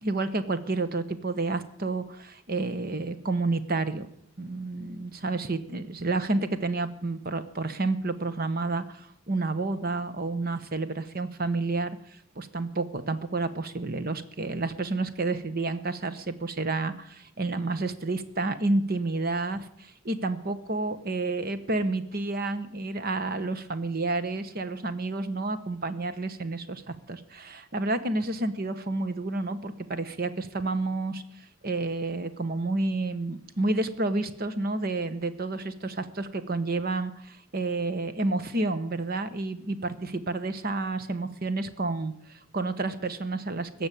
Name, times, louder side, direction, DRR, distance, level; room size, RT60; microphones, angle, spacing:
voice 1, 0.0-4.1 4.4-11.9 12.4-43.9, right 2 dB, 45° right, 12 dB, 1.0 m, -30 dB
17.0 x 7.0 x 9.1 m, 0.71 s
head